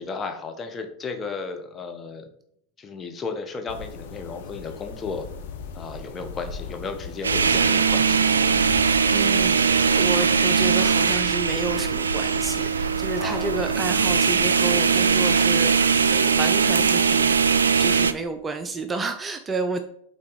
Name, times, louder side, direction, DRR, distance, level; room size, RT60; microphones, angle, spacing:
voice 1, 0.0-2.3 2.8-5.3 5.7-8.3 13.2-13.7, left 4 dB, 25° left, 5 dB, 1.2 m, -34 dB
sound 1, 3.7-17.0, left 5 dB, 60° left, 0.9 m, -40 dB
sound 2, 7.2-18.1, right 5 dB, 80° right, 0.4 m, -20 dB
voice 2, 9.1-17.4 17.8-19.8, right 3 dB, 20° right, 8 dB, 0.6 m, -30 dB
8.6 x 4.1 x 4.1 m, 0.70 s
figure-of-eight pair, 90°, 0 cm